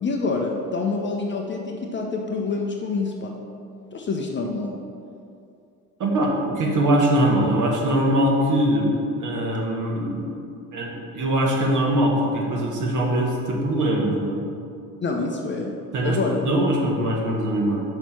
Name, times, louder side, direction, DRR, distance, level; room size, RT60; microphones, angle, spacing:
voice 1, 0.0-3.4 3.9-4.8 15.0-16.5, left 3 dB, 25° left, 1 dB, 0.7 m, -27 dB
voice 2, 6.0-10.4 10.7-14.4 15.9-16.2 16.4-17.8, right 1 dB, 40° right, -1 dB, 1.6 m, -22 dB
6.0 x 5.0 x 5.9 m, 2.5 s
figure-of-eight pair, 60°, 45 cm